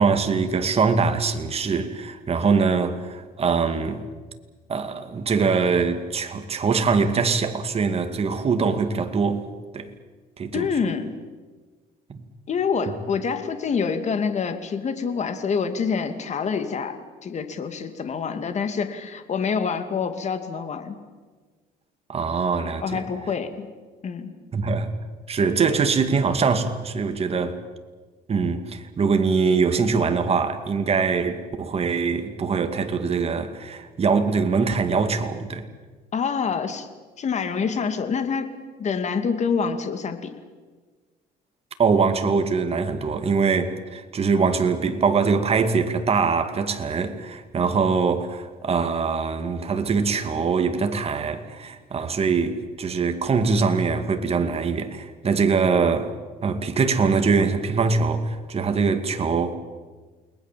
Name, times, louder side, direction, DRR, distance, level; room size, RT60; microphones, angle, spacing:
voice 1, 0.0-4.0 4.7-9.5 9.7-9.9 10.4-10.7 12.1-12.2 12.9-13.0 22.1-23.0 24.5-24.9 25.3-27.6 28.3-35.6 41.8-56.1 56.4-59.5, right 5 dB, 35° right, 2.4 m, -23 dB
voice 2, 10.5-11.1 12.5-17.0 17.2-21.0 22.8-23.7 24.0-24.3 36.1-36.9 37.2-40.3, left 6 dB, 45° left, 2.5 m, -26 dB
29.0 x 21.0 x 7.6 m
cardioid pair, 110°, 17 cm